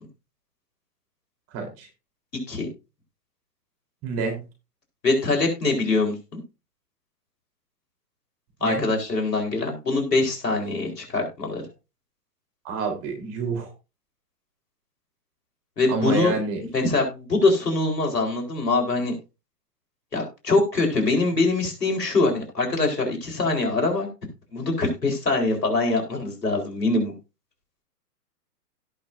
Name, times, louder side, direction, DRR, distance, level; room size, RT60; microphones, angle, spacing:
voice 1, 1.5-1.9 4.0-4.4 8.6-8.8 12.6-13.7 15.9-16.6, right 4 dB, 30° right, 3 dB, 3.7 m, -28 dB
voice 2, 5.0-6.4 8.6-11.6 15.8-16.3 16.7-19.1 20.1-24.1 24.5-27.1, left 3 dB, 80° left, 2 dB, 4.3 m, -23 dB
17.0 x 6.0 x 2.6 m, 0.29 s
hypercardioid pair, 120°, 48 cm